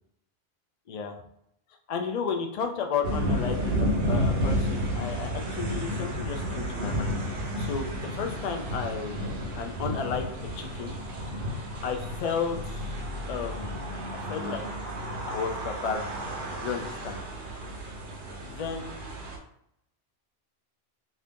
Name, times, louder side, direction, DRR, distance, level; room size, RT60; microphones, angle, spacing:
voice 1, 0.9-1.2 1.9-3.8 4.0-10.3 10.6-11.0 11.8-13.0 13.3-13.9 14.3-14.7 15.3-16.1 16.6-17.2 18.4-18.9, left 6 dB, 60° left, 4 dB, 0.4 m, -33 dB
sound 1, 3.0-19.4, equal, 50° right, 0.8 m, -32 dB
2.7 x 2.5 x 3.5 m, 0.74 s
omnidirectional pair, 1.2 m